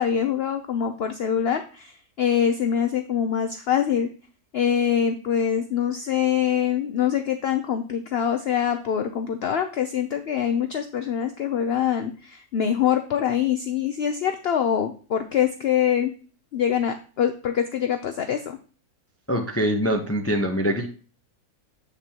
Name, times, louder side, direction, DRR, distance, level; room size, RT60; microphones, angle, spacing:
voice 1, 0.0-4.1 4.5-16.1 16.5-18.6, left 9 dB, 70° left, 7 dB, 0.6 m, -24 dB
voice 2, 19.3-20.9, equal, 20° left, 3 dB, 0.3 m, -23 dB
7.6 x 6.8 x 2.8 m, 0.39 s
omnidirectional pair, 1.6 m